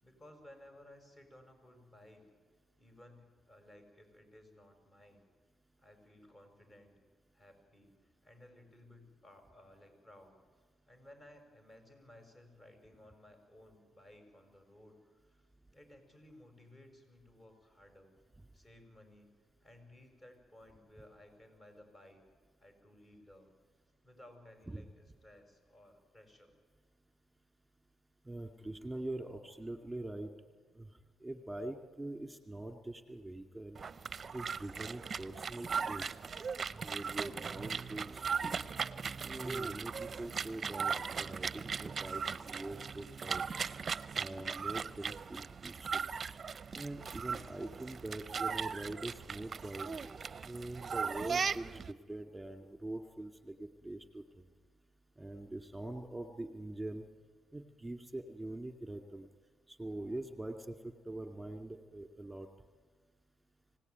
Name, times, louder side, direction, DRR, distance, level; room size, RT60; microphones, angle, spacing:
voice 1, 0.0-2.2 2.8-5.2 5.8-7.0 7.3-10.4 10.9-15.5 15.7-18.2 18.5-19.3 19.6-22.2 22.6-23.5 24.0-26.6, left 1 dB, 30° left, 5 dB, 5.8 m, -58 dB
voice 2, 28.2-30.3 30.7-30.9 31.2-33.8 34.3-36.2 36.7-38.7 39.2-43.6 44.1-46.1 46.7-49.9 50.4-54.2 55.2-57.1 57.5-59.3 59.7-62.5, right 2 dB, 10° right, 5 dB, 2.2 m, -44 dB
sound 1, 33.7-51.9, right 6 dB, 40° right, 0.6 m, -38 dB
25.0 x 18.0 x 9.4 m, 1.5 s
cardioid pair, 90°, 0 cm